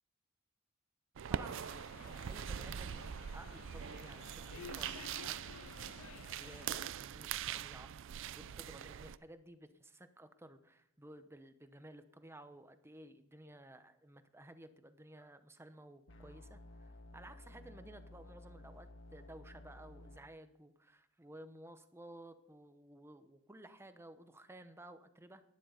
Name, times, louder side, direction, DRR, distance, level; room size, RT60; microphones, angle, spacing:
sound 1, 1.2-9.2, right 8 dB, 65° right, 0.4 m, -43 dB
voice 1, 1.3-25.4, right 1 dB, 10° right, 10 dB, 0.9 m, -56 dB
sound 2, 1.4-6.9, left 8 dB, 90° left, 0.4 m, -54 dB
sound 3, 16.1-20.2, left 1 dB, 65° left, 1.5 m, -54 dB
12.0 x 11.0 x 5.1 m, 0.77 s
head